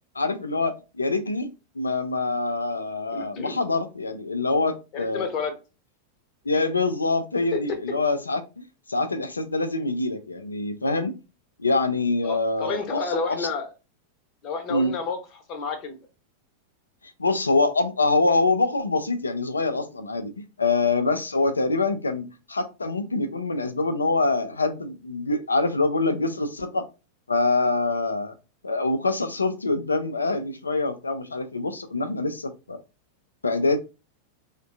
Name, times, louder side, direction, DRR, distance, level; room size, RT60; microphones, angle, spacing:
voice 1, 0.2-1.5 1.8-5.2 6.5-11.2 11.6-13.5 14.7-14.9 17.2-20.3 20.6-26.9 27.3-28.3 28.6-32.8 33.4-33.8, left 3 dB, 75° left, 0.4 m, -25 dB
voice 2, 3.1-3.6 4.9-5.5 7.5-7.8 12.2-13.7 14.4-16.0, left 4 dB, 35° left, 0.8 m, -30 dB
3.4 x 2.2 x 2.5 m
figure-of-eight pair, 90°, 0 cm